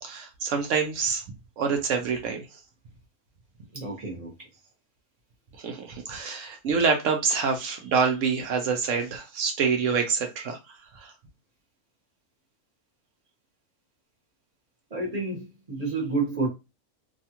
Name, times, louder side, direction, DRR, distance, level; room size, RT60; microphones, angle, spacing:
voice 1, 0.0-1.2 1.6-2.6 5.6-11.1, right 5 dB, 65° right, 0.8 m, -26 dB
voice 2, 3.7-4.3 14.9-16.5, right 3 dB, 30° right, 0.8 m, -29 dB
2.7 x 2.3 x 2.8 m
omnidirectional pair, 1.6 m